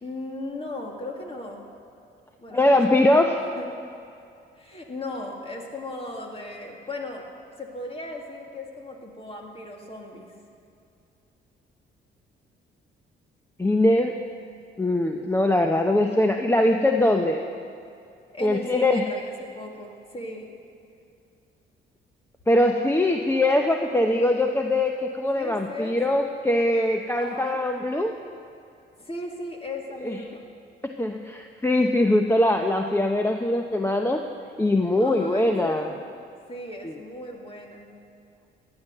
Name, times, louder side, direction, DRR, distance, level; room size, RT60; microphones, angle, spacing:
voice 1, 0.0-1.7 2.4-3.1 3.6-3.7 4.6-7.3 7.6-10.3 18.3-20.5 23.4-23.6 25.3-26.0 27.1-27.6 29.0-30.4 35.0-36.0 36.5-37.9, left 2 dB, 30° left, 1 dB, 2.5 m, -37 dB
voice 2, 2.5-3.4 13.6-14.2 14.8-17.4 18.4-19.0 22.5-28.1 30.0-30.2 30.8-34.2 34.6-35.9 36.8-36.9, left 1 dB, 10° left, 4 dB, 0.8 m, -22 dB
16.0 x 10.5 x 6.7 m, 2.5 s
cardioid pair, 90°, 20 cm